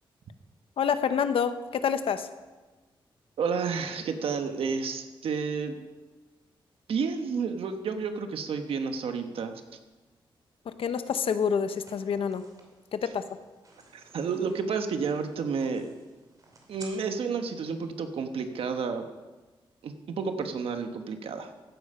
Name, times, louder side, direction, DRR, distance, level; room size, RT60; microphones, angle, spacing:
voice 1, 0.8-2.3 10.7-12.4 12.9-13.2, left 7 dB, 80° left, 10 dB, 0.8 m, -27 dB
voice 2, 3.4-5.8 6.9-9.6 13.9-15.9 16.7-19.1 19.8-21.5, right 5 dB, 90° right, 7 dB, 1.2 m, -31 dB
sound 1, 11.8-16.9, right 3 dB, 40° right, 2.7 m, -55 dB
15.5 x 8.9 x 5.5 m, 1.2 s
wide cardioid pair, 130°, 9 cm